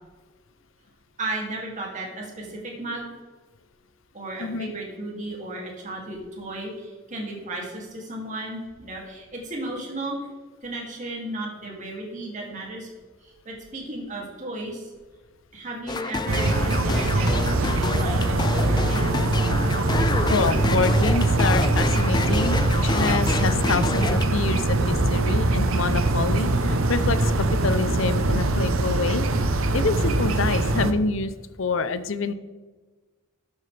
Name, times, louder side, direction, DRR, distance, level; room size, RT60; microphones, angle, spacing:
voice 1, 1.2-3.1 4.1-10.2 10.6-12.9 13.2-14.9 15.5-19.2, right 1 dB, 35° right, -1 dB, 2.6 m, -34 dB
voice 2, 4.4-4.7 20.3-29.3 29.7-31.3 31.6-32.3, left 4 dB, 70° left, 13 dB, 0.6 m, -27 dB
sound 1, 15.9-24.2, left 3 dB, 20° left, 0.4 m, -28 dB
sound 2, 16.3-30.9, right 2 dB, 85° right, 0.9 m, -22 dB
12.5 x 7.9 x 3.4 m, 1.3 s
head